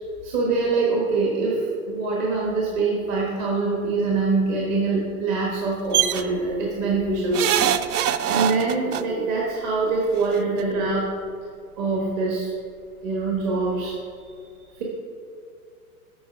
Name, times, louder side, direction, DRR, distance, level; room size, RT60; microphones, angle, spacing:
voice 1, 0.2-11.1 11.8-12.5 13.0-14.0 14.8-14.9, right 3 dB, 30° right, -3 dB, 1.3 m, -24 dB
sound 1, 5.9-6.2 7.3-9.0 10.2-10.3 10.6-10.7, right 11 dB, 85° right, 0.6 m, -22 dB
8.5 x 5.4 x 5.6 m, 2.3 s
supercardioid pair, 160°, 44 cm